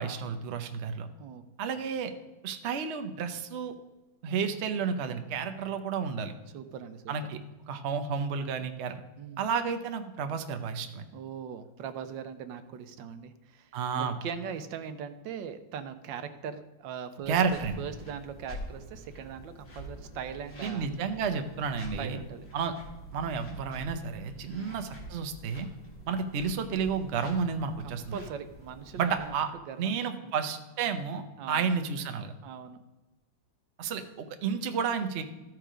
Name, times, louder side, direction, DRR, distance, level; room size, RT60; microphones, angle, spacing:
voice 1, 0.0-1.1 1.6-2.1 2.4-3.7 4.2-6.3 7.1-7.4 7.7-8.9 9.4-11.0 13.7-14.1 17.3-17.8 20.6-22.2 22.5-22.7 23.1-25.7 26.1-28.2 29.0-29.5 29.8-32.3 33.8-35.2, right 6 dB, 60° right, 7 dB, 0.7 m, -31 dB
voice 2, 6.5-7.1 9.2-9.5 11.1-20.9 22.0-22.5 24.4-24.8 27.8-29.3 29.6-30.3 31.4-31.7 32.4-32.8, right 7 dB, 80° right, 10 dB, 1.4 m, -41 dB
sound 1, 17.2-29.3, equal, 35° left, 2.3 m, -47 dB
13.5 x 4.6 x 5.0 m, 1.1 s
omnidirectional pair, 2.0 m